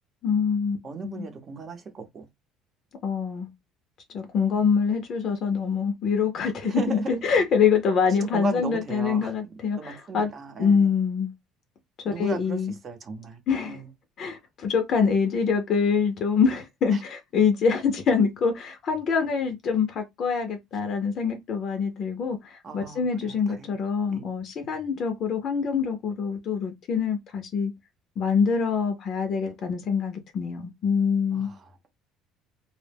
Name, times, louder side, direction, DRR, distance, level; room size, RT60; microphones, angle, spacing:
voice 1, 0.2-0.8 1.0-1.3 3.0-3.5 4.1-10.3 10.6-11.3 12.0-12.7 13.5-13.8 14.2-27.7 28.2-31.5, left 6 dB, 50° left, 0.6 m, -25 dB
voice 2, 0.8-2.3 6.6-7.2 8.1-9.3 9.8-10.9 12.0-13.9 16.9-17.0 22.6-23.8 24.1-24.2 31.3-31.9, right 4 dB, 35° right, 0.7 m, -36 dB
2.1 x 2.0 x 3.3 m
cardioid pair, 110°, 0 cm